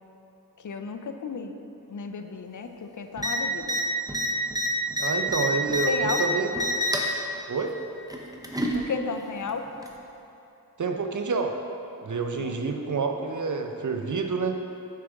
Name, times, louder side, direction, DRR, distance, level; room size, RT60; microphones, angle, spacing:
voice 1, 0.6-1.5 1.9-3.8 5.9-6.3 8.7-9.7 12.4-12.6, left 4 dB, 55° left, 6 dB, 0.5 m, -33 dB
sound 1, 3.2-3.3 3.6-3.8 4.1-6.2 6.5-7.1 8.1-8.8 9.8-9.9, equal, 10° right, 0.7 m, -27 dB
voice 2, 5.0-6.5 7.5-7.7 10.8-11.5 12.0-14.6, right 4 dB, 55° right, 4 dB, 0.6 m, -28 dB
6.7 x 5.1 x 3.5 m, 2.9 s
wide cardioid pair, 45°, 37 cm